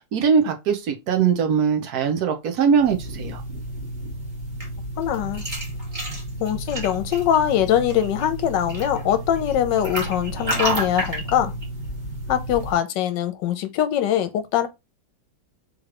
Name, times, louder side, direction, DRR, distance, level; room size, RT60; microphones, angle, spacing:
voice 1, 0.1-3.4, right 6 dB, 65° right, 1.2 m, -21 dB
sound 1, 2.7-12.8, right 1 dB, 30° right, 1.2 m, -31 dB
voice 2, 5.0-5.4 6.4-11.5 12.3-14.7, left 10 dB, 80° left, 1.3 m, -22 dB
3.8 x 3.1 x 3.0 m
omnidirectional pair, 2.0 m